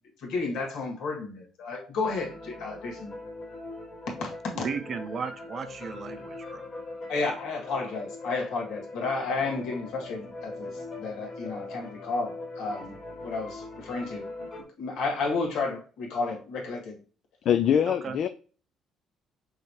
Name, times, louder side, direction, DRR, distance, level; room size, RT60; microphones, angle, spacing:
voice 1, 0.2-3.1 4.1-4.7 7.1-10.7 11.0-12.9 13.2-14.3 14.8-17.0, left 3 dB, 80° left, 0 dB, 1.8 m, -32 dB
sound 1, 2.0-14.6, left 2 dB, 30° left, 1.0 m, -41 dB
voice 2, 4.5-6.6 17.8-18.2, right 6 dB, 35° right, 9 dB, 0.5 m, -35 dB
voice 3, 17.5-18.3, left 9 dB, 50° left, 9 dB, 0.3 m, -23 dB
5.5 x 3.2 x 2.8 m, 0.38 s
cardioid pair, 160°, 0 cm